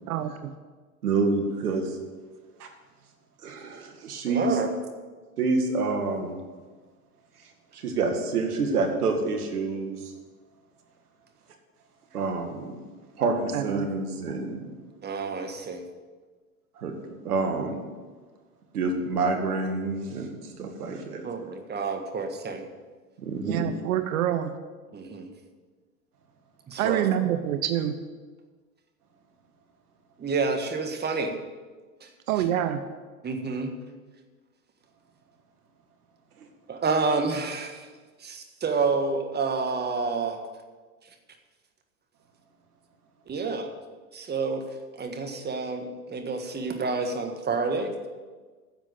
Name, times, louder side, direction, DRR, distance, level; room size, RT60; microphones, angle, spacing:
voice 1, 0.1-0.5 13.5-13.9 23.5-24.5 26.8-28.0 32.3-32.8, right 11 dB, 65° right, 10 dB, 0.9 m, -26 dB
voice 2, 1.0-2.0 2.6-2.7 3.4-4.6 5.4-6.4 7.7-10.0 12.1-12.8 13.2-14.7 16.8-17.0 17.2-17.8 18.7-21.5 23.2-23.7, right 3 dB, 80° right, 5 dB, 2.0 m, -28 dB
voice 3, 4.3-4.7 15.0-15.8 21.2-22.7 24.9-25.3 26.7-27.1 30.2-31.4 32.0-32.1 33.2-33.7 36.7-37.9 38.2-40.4 43.3-43.7 44.1-44.6 44.9-47.9, right 4 dB, 20° right, 5 dB, 1.6 m, -29 dB
10.5 x 7.4 x 8.2 m, 1.4 s
hypercardioid pair, 100°, 45 cm